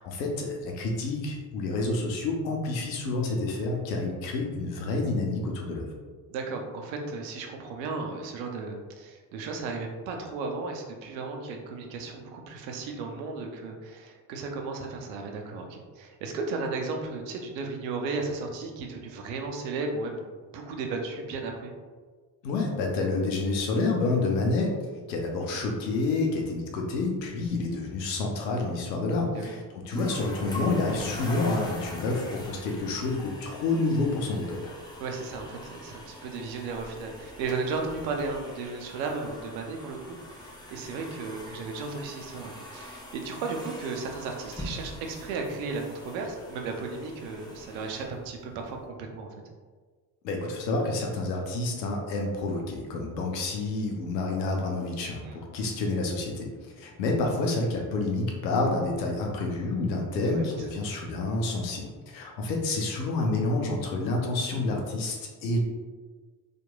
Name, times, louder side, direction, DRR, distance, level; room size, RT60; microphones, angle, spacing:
voice 1, 0.0-5.9 22.4-24.7 25.1-34.7 50.2-65.6, left 2 dB, 85° left, 1 dB, 0.6 m, -29 dB
voice 2, 6.3-21.7 25.5-25.6 29.3-29.5 35.0-49.3 55.2-55.4 60.3-60.4, right 4 dB, 80° right, 2 dB, 0.6 m, -35 dB
sound 1, 29.9-48.8, left 1 dB, 10° left, 0.6 m, -42 dB
2.9 x 2.5 x 2.2 m, 1.5 s
hypercardioid pair, 50°, 50 cm